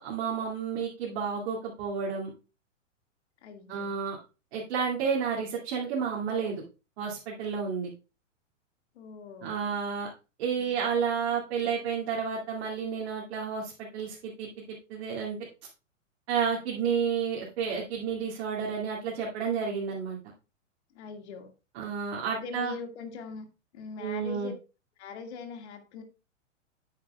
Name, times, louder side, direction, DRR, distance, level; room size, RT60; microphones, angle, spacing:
voice 1, 0.0-2.3 3.7-4.2 4.5-6.6 7.0-7.9 9.4-10.1 10.4-14.5 14.9-15.4 16.3-20.2 21.7-22.8 24.0-24.5, right 6 dB, 55° right, 2.4 m, -31 dB
voice 2, 3.4-4.0 8.9-9.7 10.6-10.7 20.9-21.5 22.3-23.5 23.7-24.5 25.0-26.0, left 5 dB, 60° left, 2.0 m, -41 dB
9.4 x 8.8 x 2.3 m
hypercardioid pair, 110°, 39 cm